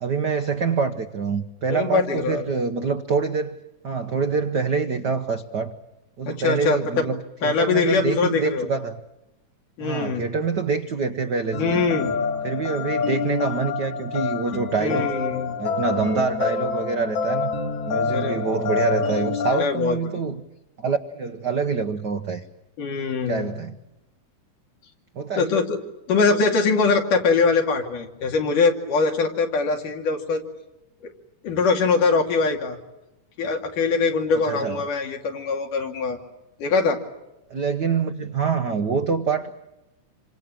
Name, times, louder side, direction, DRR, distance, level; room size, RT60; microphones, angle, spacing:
voice 1, 0.0-3.6 3.8-5.7 6.2-9.0 9.8-11.8 12.4-15.1 15.6-17.5 17.9-20.4 20.8-22.4 23.3-23.8 25.1-25.6 34.5-34.8 37.5-39.5, right 5 dB, 85° right, 7 dB, 0.9 m, -25 dB
voice 2, 1.7-2.4 6.3-6.8 7.4-8.7 9.8-10.2 11.6-12.1 14.8-15.6 18.1-18.4 19.0-19.2 19.6-20.0 22.8-23.5 25.4-25.8 26.1-30.4 31.0-31.1 31.4-32.8 33.4-36.2 36.6-37.0, left 4 dB, 85° left, 3 dB, 4.0 m, -22 dB
sound 1, 11.5-19.6, left 5 dB, 60° left, 3.6 m, -27 dB
27.5 x 25.5 x 7.5 m, 0.98 s
omnidirectional pair, 3.6 m